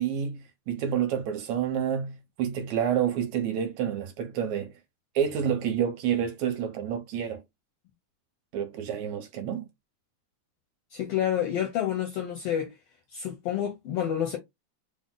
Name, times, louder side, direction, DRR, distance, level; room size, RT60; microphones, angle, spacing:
voice 1, 0.0-4.7 5.2-7.4 8.5-9.7, right 9 dB, 75° right, 2.1 m, -29 dB
voice 2, 10.9-12.7 13.1-14.4, left 10 dB, 75° left, 1.4 m, -29 dB
5.0 x 2.1 x 3.7 m
omnidirectional pair, 3.4 m